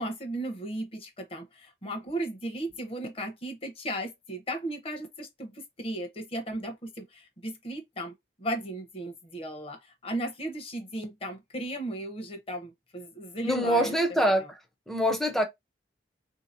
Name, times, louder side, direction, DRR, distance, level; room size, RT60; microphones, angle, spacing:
voice 1, 0.0-8.1 8.4-14.5, right 1 dB, 30° left, 0.9 m, -36 dB
voice 2, 13.4-14.4 14.9-15.5, equal, ahead, 0.5 m, -24 dB
3.7 x 2.8 x 2.5 m
head